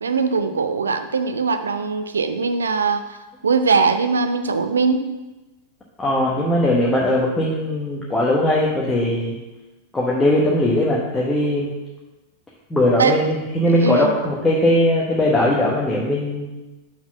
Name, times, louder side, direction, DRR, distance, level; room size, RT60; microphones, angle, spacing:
voice 1, 0.0-3.2 3.4-5.0 13.0-13.3 13.8-14.1, right 4 dB, 70° right, 9 dB, 0.5 m, -21 dB
voice 2, 6.0-9.4 9.9-11.7 12.7-16.5, left 1 dB, 10° left, -5 dB, 1.1 m, -19 dB
6.0 x 4.1 x 5.9 m, 1.1 s
figure-of-eight pair, 90°, 0 cm